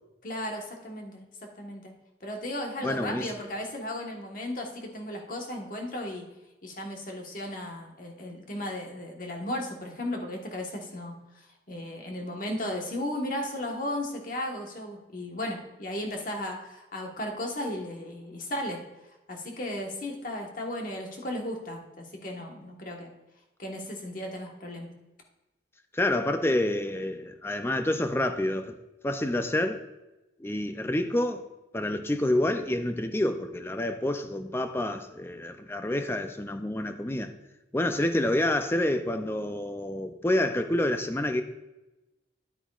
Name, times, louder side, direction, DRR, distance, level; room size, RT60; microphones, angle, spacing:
voice 1, 0.2-1.3 1.6-1.9 2.2-6.3 6.6-18.8 19.3-23.1 23.6-24.9, left 1 dB, 50° left, 1 dB, 1.4 m, -35 dB
voice 2, 2.8-3.3 25.9-28.8 29.0-29.8 30.4-31.4 31.7-37.3 37.7-41.4, left 1 dB, 15° left, 8 dB, 0.5 m, -28 dB
10.5 x 8.9 x 2.4 m, 1.0 s
head